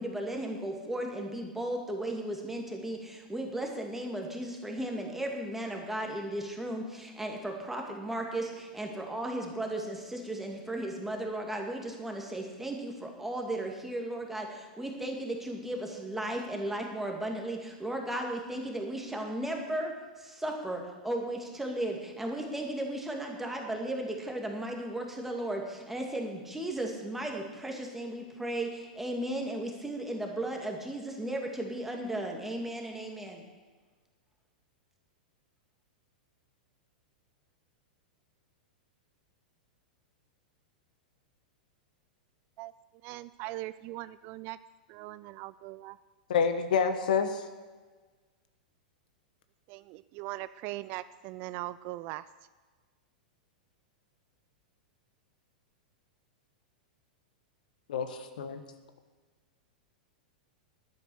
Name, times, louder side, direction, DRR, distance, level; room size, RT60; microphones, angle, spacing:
voice 1, 0.0-33.4, right 1 dB, 5° right, 1 dB, 2.3 m, -35 dB
voice 2, 43.0-44.6 44.9-46.0 49.7-52.3, right 17 dB, 45° right, 16 dB, 0.3 m, -40 dB
voice 3, 46.3-47.4 57.9-58.6, left 6 dB, 70° left, 9 dB, 1.1 m, -28 dB
11.5 x 9.2 x 6.4 m, 1.4 s
hypercardioid pair, 100°, 5 cm